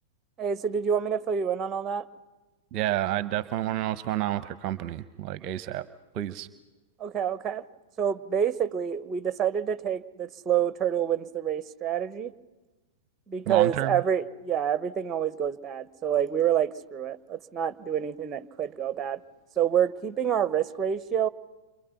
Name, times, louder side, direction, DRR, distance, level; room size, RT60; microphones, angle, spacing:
voice 1, 0.4-2.0 7.0-7.6 8.0-12.3 13.3-19.2 19.6-21.3, right 9 dB, 20° right, 14 dB, 1.1 m, -27 dB
voice 2, 2.7-5.9 6.1-6.5 13.5-14.0, right 13 dB, 40° right, 14 dB, 0.9 m, -29 dB
30.0 x 26.5 x 5.9 m, 1.2 s
figure-of-eight pair, 100°, 0 cm